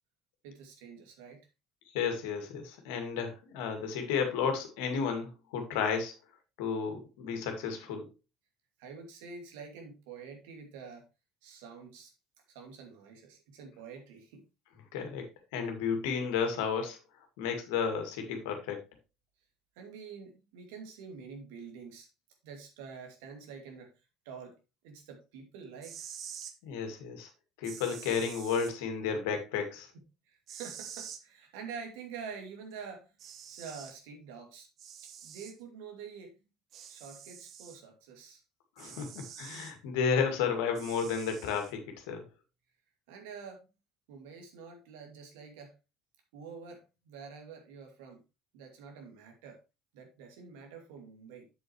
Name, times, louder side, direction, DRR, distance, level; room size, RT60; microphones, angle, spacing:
voice 1, 0.4-1.4 8.8-11.1 11.4-12.1 12.5-14.4 19.8-22.1 22.4-23.9 24.2-24.6 24.8-26.0 30.3-33.1 33.5-34.7 35.2-36.3 36.9-38.4 43.1-43.7 44.1-45.7 46.3-48.2 48.5-49.6 49.9-51.5, right 5 dB, 70° right, 3 dB, 2.4 m, -47 dB
voice 2, 1.9-6.1 6.6-8.0 14.9-15.2 15.5-17.0 17.4-18.8 26.6-27.3 27.6-29.9 38.8-41.8 42.1-42.2, left 6 dB, 70° left, 5 dB, 2.1 m, -32 dB
sound 1, 25.7-26.6 27.6-28.7 30.5-31.2 32.7-32.8 33.2-34.0 34.8-35.6 36.7-37.8 38.8-39.7 40.8-41.7, right 8 dB, 50° right, 1.1 m, -47 dB
8.2 x 7.9 x 3.1 m, 0.27 s
figure-of-eight pair, 60°, 0 cm